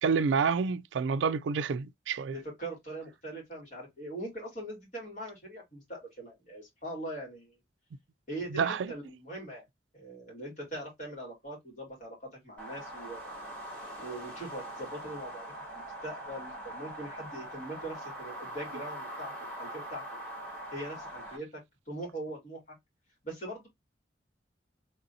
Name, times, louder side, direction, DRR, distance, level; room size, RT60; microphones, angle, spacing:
voice 1, 0.0-2.3 8.5-8.9, right 5 dB, 85° right, 0.4 m, -28 dB
voice 2, 2.3-7.5 8.3-9.7 9.9-13.3 14.0-19.3 19.6-20.0 20.7-21.6 21.9-22.8 23.2-23.7, right 1 dB, 45° left, 2.8 m, -41 dB
sound 1, 12.6-21.4, right 1 dB, 10° left, 1.9 m, -42 dB
4.0 x 3.5 x 2.6 m
head